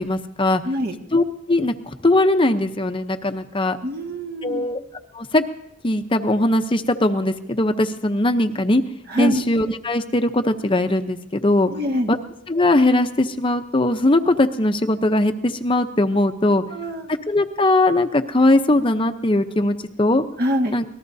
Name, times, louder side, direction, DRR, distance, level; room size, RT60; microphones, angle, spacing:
voice 1, 0.0-0.6 1.1-3.8 4.4-4.8 5.1-5.4 5.8-8.8 9.2-11.7 12.1-12.2 12.5-16.6 17.3-20.2 20.7-20.8, left 1 dB, 25° left, 7 dB, 0.8 m, -20 dB
voice 2, 0.6-1.0 3.8-4.6 9.1-9.4 11.7-12.1 16.5-17.1 20.4-20.8, left 1 dB, 55° right, 3 dB, 1.7 m, -25 dB
26.0 x 19.0 x 2.7 m, 0.80 s
head